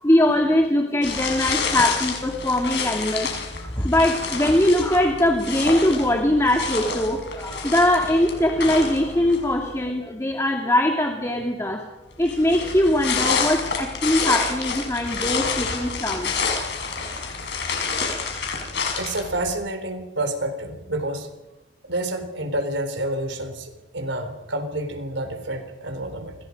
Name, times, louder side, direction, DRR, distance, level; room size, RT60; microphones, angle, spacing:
voice 1, 0.0-3.3 3.8-11.9 12.2-16.3, left 1 dB, 15° left, 2 dB, 2.2 m, -21 dB
sound 1, 1.0-9.6 12.2-19.5, left 5 dB, 65° left, 6.2 m, -28 dB
voice 2, 19.0-21.3 21.9-26.4, right 1 dB, 85° right, 8 dB, 3.9 m, -29 dB
29.5 x 25.5 x 5.3 m, 1.0 s
head